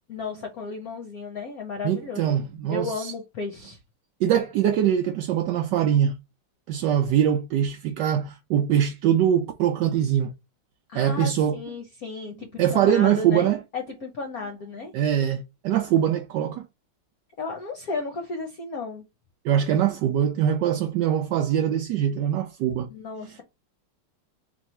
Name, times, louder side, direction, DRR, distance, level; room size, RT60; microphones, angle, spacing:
voice 1, 0.1-2.4 2.7-3.8 10.9-14.9 17.4-19.0 22.9-23.4, left 4 dB, 60° left, 1.0 m, -34 dB
voice 2, 1.8-3.1 4.2-6.2 6.7-10.3 10.9-11.5 12.6-13.6 14.9-16.7 19.4-22.9, right 10 dB, 80° right, 1.0 m, -23 dB
3.6 x 3.1 x 4.2 m
omnidirectional pair, 2.4 m